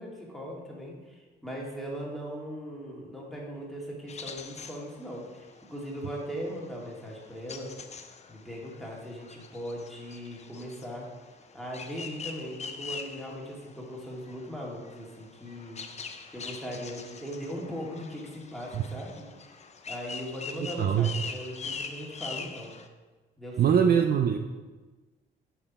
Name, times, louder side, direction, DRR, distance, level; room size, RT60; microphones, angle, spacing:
voice 1, 0.0-7.8 8.3-11.1 11.5-19.5 19.9-22.8 23.4-23.8, equal, ahead, -4 dB, 2.2 m, -39 dB
sound 1, 4.1-22.9, left 5 dB, 35° left, 0.6 m, -43 dB
voice 2, 20.6-21.1 23.6-24.4, right 8 dB, 50° right, 6 dB, 0.5 m, -23 dB
7.2 x 5.6 x 4.2 m, 1.3 s
cardioid pair, 90°, 20 cm